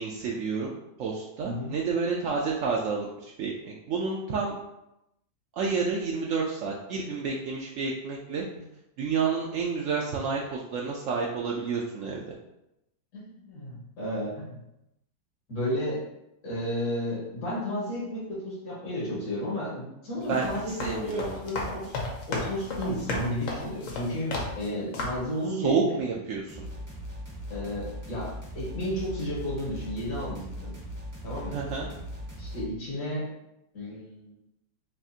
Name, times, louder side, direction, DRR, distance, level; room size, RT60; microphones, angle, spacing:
voice 1, 0.0-4.6 5.5-8.4 9.0-12.2 20.3-20.5 20.8-21.3 25.6-26.6 31.5-31.9, right 5 dB, 80° right, -2 dB, 0.7 m, -29 dB
voice 2, 1.4-1.7 13.1-14.6 15.5-16.0 16.4-22.0 22.3-26.0 27.5-30.7 31.2-31.6 32.4-33.3 33.7-34.3, left 1 dB, 80° left, -7 dB, 2.3 m, -33 dB
sound 1, 20.2-24.7 24.9-25.3, left 2 dB, 55° left, 1.0 m, -34 dB
sound 2, 26.5-32.7, equal, 30° right, 0.3 m, -39 dB
5.6 x 2.5 x 2.7 m, 0.86 s
omnidirectional pair, 1.9 m